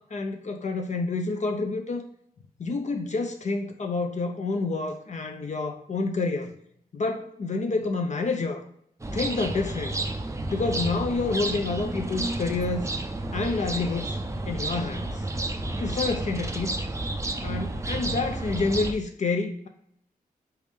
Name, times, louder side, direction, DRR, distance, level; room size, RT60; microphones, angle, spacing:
voice 1, 0.0-2.1 2.6-6.5 6.9-8.6 9.1-10.0 10.5-12.9 13.3-14.2 14.5-15.3 15.8-16.8 17.4-19.7, left 3 dB, 50° left, 5 dB, 0.5 m, -28 dB
sound 1, 9.0-18.9, right 2 dB, 20° right, 0.4 m, -31 dB
4.1 x 3.5 x 3.3 m, 0.68 s
cardioid pair, 75°, 16 cm